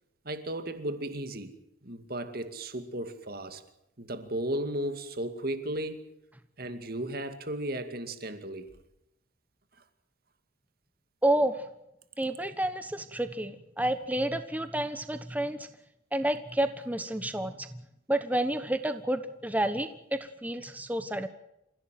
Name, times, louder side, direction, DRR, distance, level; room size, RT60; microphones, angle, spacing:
voice 1, 0.2-1.5 1.8-3.6 4.0-6.0 6.6-8.7, right 1 dB, 50° right, 2.3 m, -35 dB
voice 2, 11.2-11.6 12.2-15.7 16.1-17.7 18.1-21.3, right 1 dB, 10° right, 1.1 m, -30 dB
29.0 x 16.0 x 7.7 m
head